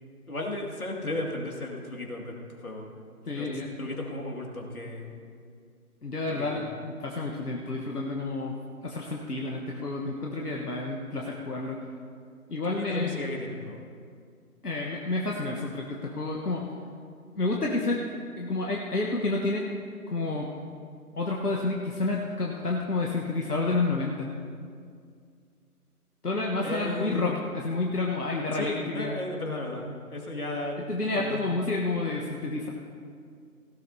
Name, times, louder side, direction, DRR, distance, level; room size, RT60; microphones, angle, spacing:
voice 1, 0.3-2.3 2.6-2.9 3.3-3.5 3.8-5.1 6.4-6.7 12.6-13.8 26.6-27.4 28.5-30.8 31.2-31.4, left 2 dB, 65° left, 0 dB, 2.3 m, -34 dB
voice 2, 3.3-3.7 6.0-8.5 8.8-11.8 12.5-13.2 14.6-16.6 17.4-18.0 18.4-19.7 20.1-20.5 21.1-24.3 26.2-29.2 30.9-32.7, left 3 dB, 85° left, -1 dB, 1.3 m, -29 dB
17.0 x 12.0 x 2.8 m, 2.2 s
figure-of-eight pair, 175°, 45 cm